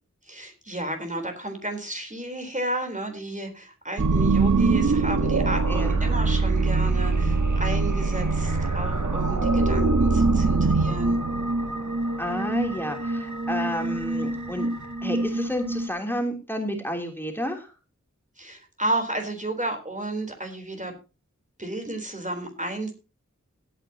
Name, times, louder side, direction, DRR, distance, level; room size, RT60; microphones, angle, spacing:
voice 1, 0.2-11.2 18.4-20.9 21.6-22.9, right 1 dB, 25° right, 4 dB, 3.8 m, -32 dB
sound 1, 4.0-15.9, right 3 dB, 80° right, 1.5 m, -23 dB
voice 2, 5.7-6.1 12.2-14.7 15.0-17.7, equal, 5° left, 3 dB, 3.2 m, -31 dB
17.0 x 9.3 x 2.9 m, 0.30 s
wide cardioid pair, 50°, 29 cm